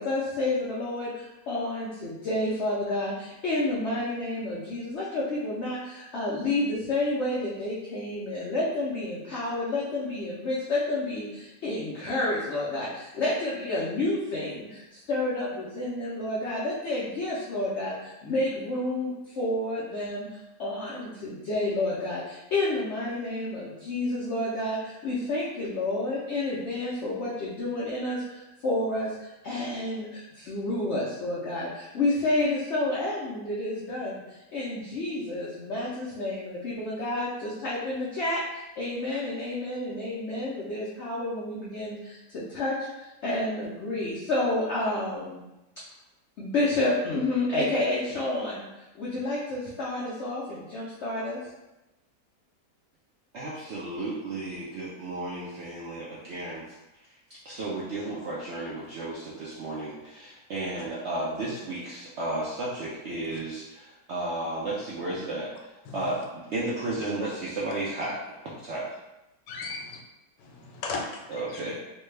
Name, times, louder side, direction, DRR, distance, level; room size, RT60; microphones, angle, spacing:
voice 1, 0.0-45.4 46.4-51.4, left 2 dB, 70° left, -6 dB, 0.6 m, -30 dB
voice 2, 53.3-56.6 57.4-65.5 65.9-68.8 71.3-71.7, right 2 dB, 90° right, -6 dB, 0.6 m, -33 dB
voice 3, 65.8-66.2 69.5-70.0 70.4-71.6, left 3 dB, 85° left, 1 dB, 1.3 m, -37 dB
3.3 x 2.2 x 3.2 m, 0.97 s
omnidirectional pair, 1.8 m